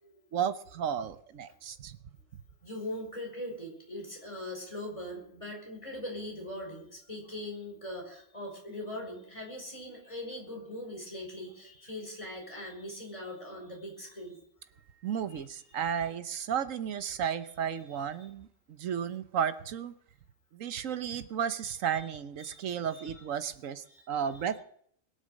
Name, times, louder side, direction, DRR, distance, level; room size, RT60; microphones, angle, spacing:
voice 1, 0.3-2.0 2.3-2.4 15.0-19.9 20.5-24.6, right 8 dB, 70° right, 12 dB, 1.3 m, -33 dB
voice 2, 2.6-14.4 14.7-15.9 22.4-22.6 22.9-23.2 23.9-24.5, left 1 dB, 20° left, 0 dB, 5.1 m, -41 dB
21.5 x 8.0 x 6.5 m, 0.66 s
omnidirectional pair, 1.4 m